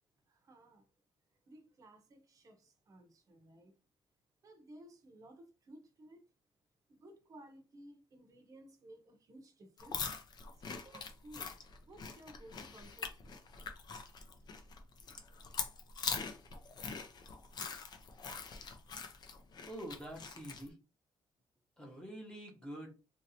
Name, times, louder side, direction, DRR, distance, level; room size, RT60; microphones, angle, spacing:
voice 1, 0.3-0.8 1.5-3.8 4.4-6.2 6.9-10.0 10.7-11.5 11.9-13.4, right 1 dB, 35° right, 0.7 m, -57 dB
sound 1, 9.8-20.7, left 5 dB, 45° left, 0.5 m, -43 dB
voice 2, 19.6-20.8 21.8-22.9, right 1 dB, 10° left, 0.9 m, -46 dB
3.1 x 2.7 x 2.7 m
cardioid pair, 145°, 10 cm